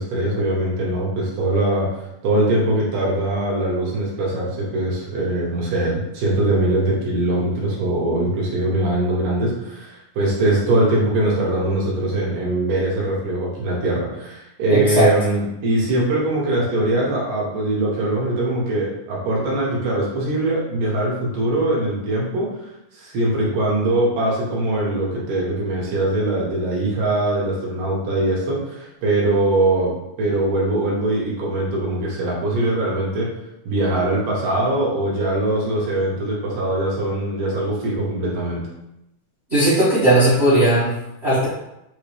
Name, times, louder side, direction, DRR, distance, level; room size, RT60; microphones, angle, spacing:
voice 1, 0.0-1.9 2.2-22.5 22.9-29.9 30.2-33.3 33.7-38.6, right 1 dB, 75° right, -5 dB, 2.5 m, -22 dB
voice 2, 14.7-15.1 39.5-40.9 41.2-41.5, right 1 dB, 55° right, -10 dB, 0.7 m, -16 dB
5.5 x 2.8 x 3.2 m, 0.87 s
omnidirectional pair, 3.8 m